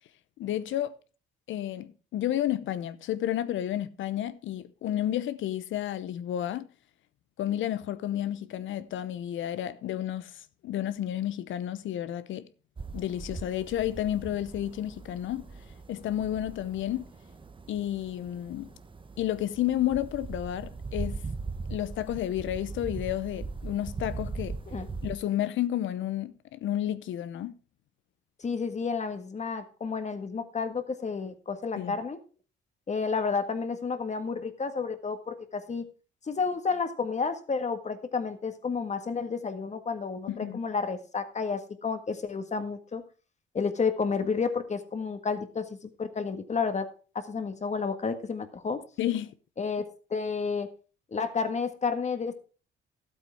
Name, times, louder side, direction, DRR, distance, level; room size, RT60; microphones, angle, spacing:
voice 1, 0.4-0.9 1.5-6.7 7.4-12.5 12.9-15.4 15.9-17.1 17.7-18.7 19.2-21.2 21.7-24.6 25.0-27.5 31.8-32.0 40.3-40.6 49.0-49.3, left 12 dB, 75° left, 0.8 m, -31 dB
sound 1, 12.8-25.1, right 4 dB, 25° right, 1.0 m, -40 dB
voice 2, 28.4-32.2 32.9-35.8 36.3-43.0 43.5-46.9 47.1-48.8 49.6-49.8 50.1-50.7 51.1-52.3, left 5 dB, 35° left, 1.7 m, -31 dB
12.5 x 8.2 x 4.7 m
cardioid pair, 90°, 20 cm